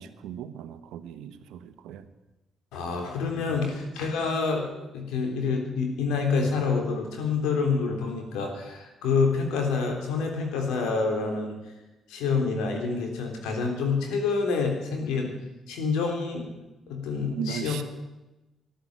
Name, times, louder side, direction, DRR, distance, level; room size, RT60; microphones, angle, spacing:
voice 1, 0.0-2.0 3.3-3.6 17.3-17.8, right 8 dB, 85° right, 11 dB, 1.2 m, -37 dB
voice 2, 2.7-11.6 12.1-15.3 15.7-16.5 16.9-17.8, left 4 dB, 85° left, 3 dB, 3.5 m, -27 dB
13.5 x 12.0 x 8.8 m, 1.0 s
supercardioid pair, 70°, 0 cm